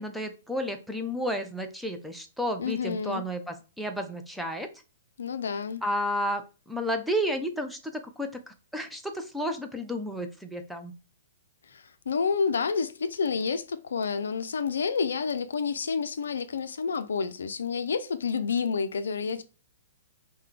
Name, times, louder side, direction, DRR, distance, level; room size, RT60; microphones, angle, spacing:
voice 1, 0.0-4.7 5.8-10.9, equal, ahead, 0.4 m, -32 dB
voice 2, 2.6-3.2 5.2-5.8 11.7-19.4, left 5 dB, 75° left, 0.4 m, -29 dB
3.2 x 2.1 x 3.7 m
hypercardioid pair, 120°, 0 cm